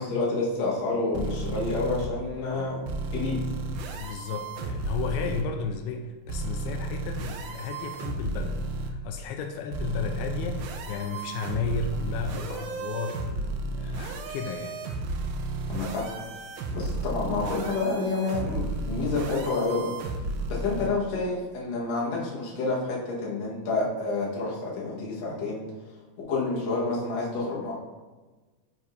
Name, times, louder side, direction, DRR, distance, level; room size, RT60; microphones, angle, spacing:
voice 1, 0.0-2.8 3.1-3.4 15.7-16.2 16.7-19.9 20.5-25.6 26.2-27.7, left 3 dB, 55° left, -5 dB, 2.2 m, -29 dB
sound 1, 1.1-2.1 2.9-5.4 6.3-8.9 9.7-20.9, right 2 dB, 85° right, 1.8 m, -33 dB
voice 2, 4.0-8.6 8.9-14.8, left 5 dB, 85° left, 5 dB, 2.4 m, -34 dB
9.3 x 4.9 x 2.7 m, 1.2 s
omnidirectional pair, 4.3 m